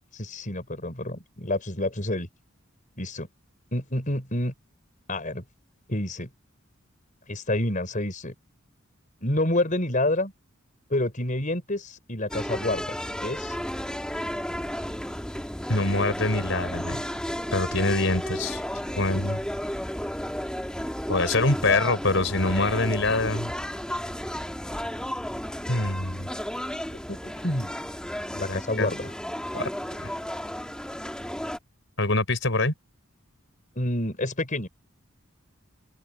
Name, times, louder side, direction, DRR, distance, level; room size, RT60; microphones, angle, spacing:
voice 1, 0.1-2.3 3.0-3.3 3.7-4.5 5.1-5.4 5.9-6.3 7.3-8.3 9.2-10.3 10.9-13.0 13.2-13.6 27.1-27.7 28.4-29.1 33.8-34.7, left 1 dB, 40° left, 5.6 m, -28 dB
sound 1, 12.3-31.6, equal, 5° left, 2.0 m, -33 dB
voice 2, 15.7-17.0 17.5-18.6 19.0-19.4 21.1-23.5 25.7-26.3 28.3-28.9 29.5-29.7 30.0-30.1 32.0-32.7, left 2 dB, 65° left, 5.9 m, -25 dB
open air
head